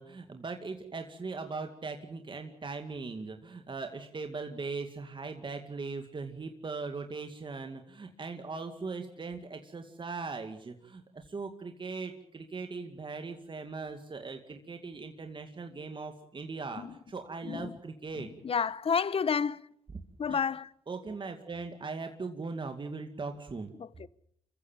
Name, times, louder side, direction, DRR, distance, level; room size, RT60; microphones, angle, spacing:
voice 1, 0.0-18.3 20.3-20.4 20.9-23.7, right 4 dB, 40° right, 2.2 m, -39 dB
voice 2, 18.4-19.6 20.2-20.7 23.8-24.1, left 6 dB, 45° left, 0.9 m, -30 dB
26.0 x 15.0 x 9.1 m
cardioid pair, 65°, 13 cm